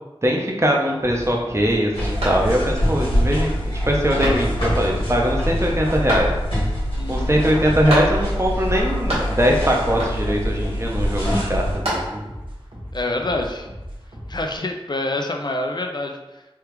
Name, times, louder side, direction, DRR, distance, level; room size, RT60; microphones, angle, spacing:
voice 1, 0.2-6.3 7.1-12.2, equal, 30° right, -1 dB, 0.6 m, -21 dB
sound 1, 1.0-14.6, equal, 60° right, 0.8 m, -37 dB
sound 2, 1.9-11.8, equal, 70° left, 1.5 m, -24 dB
sound 3, 2.2-2.9 3.3-3.4 4.2-4.8 6.1-6.7 7.9-8.5 8.7-9.6 10.0-10.5 11.5-12.4, equal, 90° right, 1.3 m, -28 dB
voice 2, 6.9-7.4 12.9-13.7 14.3-16.2, left 2 dB, 45° left, 4 dB, 0.4 m, -26 dB
3.4 x 2.3 x 3.0 m, 1.0 s
wide cardioid pair, 45°, 10 cm